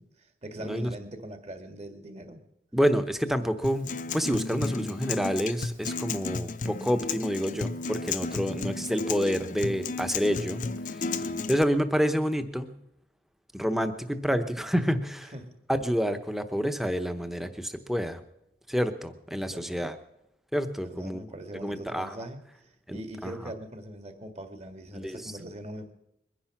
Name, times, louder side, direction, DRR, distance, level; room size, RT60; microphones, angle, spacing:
voice 1, 0.0-2.4 8.2-8.7 11.1-11.5 15.3-15.6 19.4-19.9 20.8-25.9, right 1 dB, 40° right, 6 dB, 1.9 m, -42 dB
voice 2, 0.6-0.9 2.7-10.6 10.9-11.0 11.5-12.8 13.5-15.3 15.7-18.2 18.7-20.0 20.5-21.2 21.6-22.1 22.9-23.3 24.9-25.3, equal, ahead, 9 dB, 0.9 m, -28 dB
Acoustic guitar, 3.6-11.6, left 4 dB, 45° left, 0.7 m, -33 dB
22.0 x 10.0 x 6.0 m, 0.85 s
head